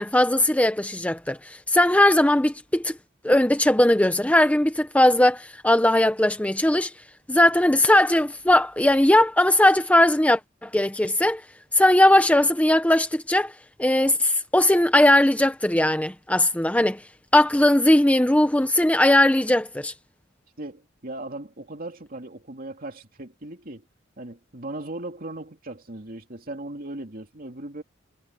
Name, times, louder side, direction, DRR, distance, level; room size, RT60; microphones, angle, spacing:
voice 1, 0.0-2.9 3.2-6.9 7.3-11.4 11.7-13.5 13.8-17.0 17.3-19.9, left 1 dB, 5° left, 0.8 m, -19 dB
voice 2, 20.6-23.8 24.2-27.8, right 2 dB, 45° right, 2.9 m, -37 dB
head